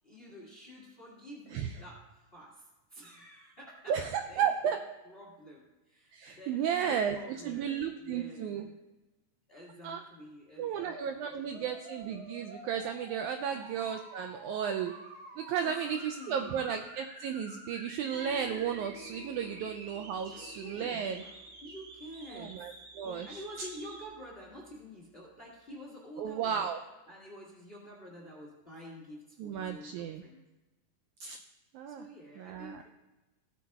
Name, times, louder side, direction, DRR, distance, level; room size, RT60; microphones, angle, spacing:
voice 1, 0.0-4.0 4.3-4.8 5.1-8.7 9.5-11.7 13.4-13.7 14.4-14.5 15.6-16.6 19.4-19.6 20.2-22.6 23.0-26.6 27.1-30.4 31.9-33.0, equal, 30° left, -4 dB, 1.2 m, -49 dB
voice 2, 3.9-4.8 6.1-8.7 9.8-10.0 10.6-14.9 15.4-21.2 22.3-23.7 26.2-26.8 29.4-30.2 31.2-31.4 31.7-32.0 32.4-32.8, right 8 dB, 90° right, 6 dB, 1.7 m, -34 dB
sound 1, 10.7-24.1, right 2 dB, 70° right, 1.1 m, -50 dB
sound 2, 18.1-24.8, right 1 dB, 10° right, 1.0 m, -53 dB
16.0 x 8.5 x 2.3 m, 1.1 s
omnidirectional pair, 3.9 m